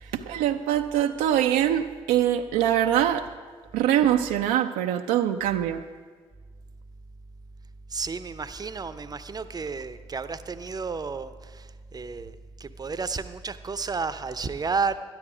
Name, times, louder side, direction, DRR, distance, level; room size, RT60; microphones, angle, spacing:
voice 1, 0.1-3.3 3.7-5.8, right 11 dB, 70° right, 6 dB, 0.5 m, -23 dB
voice 2, 7.9-15.0, right 4 dB, 25° right, 12 dB, 0.7 m, -32 dB
12.0 x 11.0 x 5.0 m, 1.5 s
hypercardioid pair, 45°, 15 cm